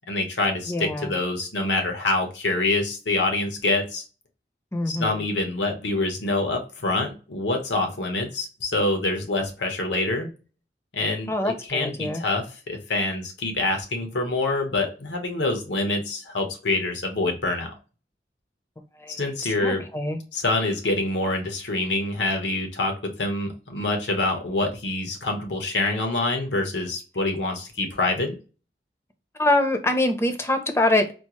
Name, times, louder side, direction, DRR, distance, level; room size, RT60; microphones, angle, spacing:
voice 1, 0.1-4.0 4.9-10.3 10.9-17.7 19.2-19.9 20.3-28.3, left 2 dB, 90° left, 4 dB, 1.0 m, -26 dB
voice 2, 0.7-1.1 4.7-5.2 11.3-12.2 19.0-19.2 19.4-20.2 29.4-31.1, left 2 dB, 15° left, 6 dB, 0.5 m, -24 dB
4.3 x 2.0 x 2.9 m, 0.33 s
head